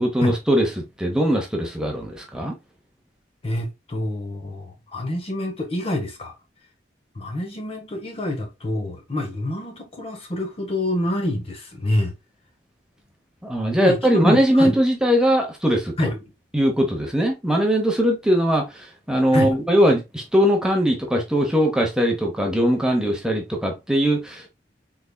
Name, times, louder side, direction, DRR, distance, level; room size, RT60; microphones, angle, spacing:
voice 1, 0.0-2.5 13.4-15.9 16.5-24.5, equal, 5° right, 0.8 m, -20 dB
voice 2, 3.4-6.3 7.1-12.1 13.8-14.8 16.0-16.2 19.3-19.5, left 1 dB, 35° left, 0.7 m, -27 dB
3.7 x 3.3 x 2.2 m
head